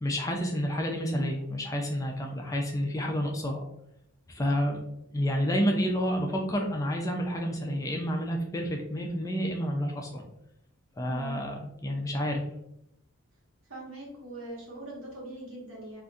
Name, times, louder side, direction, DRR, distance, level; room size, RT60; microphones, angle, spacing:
voice 1, 0.0-3.7 4.3-4.8 5.1-10.2 11.0-12.4, equal, 15° left, 2 dB, 0.3 m, -29 dB
voice 2, 11.1-11.4 13.7-16.0, right 1 dB, 65° right, -4 dB, 1.3 m, -42 dB
3.8 x 2.5 x 2.4 m, 0.80 s
head